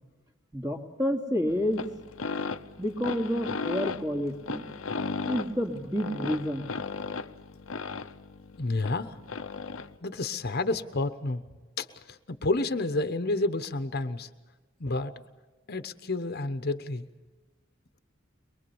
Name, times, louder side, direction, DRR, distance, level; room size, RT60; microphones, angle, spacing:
voice 1, 0.5-1.8 2.8-4.7 5.2-6.7, equal, 20° right, 2 dB, 2.8 m, -29 dB
sound 1, 1.5-10.0, left 4 dB, 80° left, 0.9 m, -36 dB
voice 2, 8.6-9.2 10.0-11.4 11.8-14.3 14.8-15.2 15.7-17.1, left 2 dB, 50° left, 9 dB, 1.1 m, -30 dB
23.0 x 23.0 x 7.1 m, 1.2 s
head